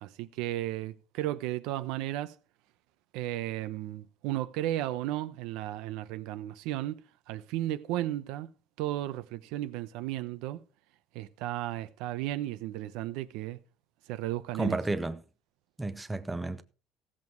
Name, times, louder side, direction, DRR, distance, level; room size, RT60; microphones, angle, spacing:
voice 1, 0.0-2.3 3.1-8.5 8.8-10.6 11.1-13.6 14.1-14.8, right 14 dB, 85° right, 0.9 m, -34 dB
voice 2, 14.6-15.2 15.8-16.6, right 2 dB, 10° right, 0.7 m, -31 dB
16.0 x 7.6 x 4.6 m
cardioid pair, 165°, 0 cm